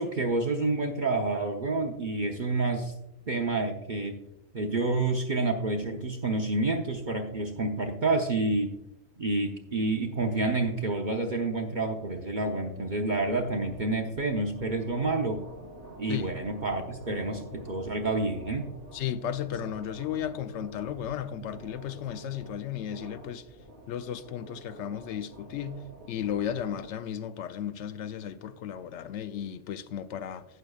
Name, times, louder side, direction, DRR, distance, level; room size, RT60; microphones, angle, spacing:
voice 1, 0.0-2.9 3.3-4.2 4.5-8.8 9.2-15.5 16.0-18.7, right 2 dB, 40° right, 0.8 m, -29 dB
sound 1, 12.7-26.9, right 1 dB, 50° left, 4.0 m, -48 dB
voice 2, 18.9-23.4 23.9-30.4, left 9 dB, 65° left, 0.8 m, -34 dB
16.0 x 6.5 x 2.3 m
omnidirectional pair, 1.4 m